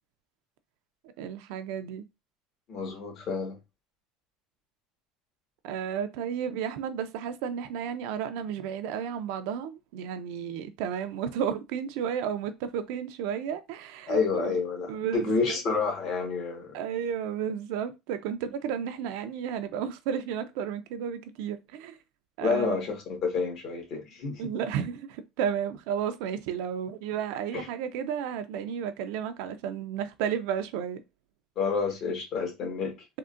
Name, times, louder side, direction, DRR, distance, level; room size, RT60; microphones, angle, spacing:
voice 1, 1.2-2.0 5.6-14.5 14.9-15.6 16.7-22.0 22.4-22.8 24.4-31.0, right 8 dB, 75° right, 0.4 m, -32 dB
voice 2, 2.7-3.6 14.1-16.8 22.4-24.5 27.5-27.7 31.5-33.0, left 4 dB, 50° left, 1.4 m, -29 dB
3.6 x 2.1 x 2.5 m
supercardioid pair, 105°, 0 cm